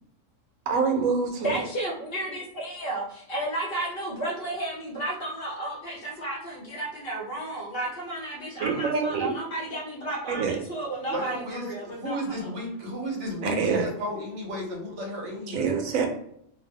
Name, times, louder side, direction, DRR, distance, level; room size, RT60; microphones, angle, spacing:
voice 1, 0.7-1.6 8.6-9.3 10.3-10.6 13.4-13.8 15.5-16.1, right 5 dB, 85° right, 4 dB, 1.0 m, -26 dB
voice 2, 1.4-12.5, right 1 dB, 50° left, -3 dB, 1.0 m, -32 dB
voice 3, 11.1-15.7, equal, 65° right, -1 dB, 1.1 m, -33 dB
2.7 x 2.0 x 3.4 m, 0.70 s
omnidirectional pair, 1.4 m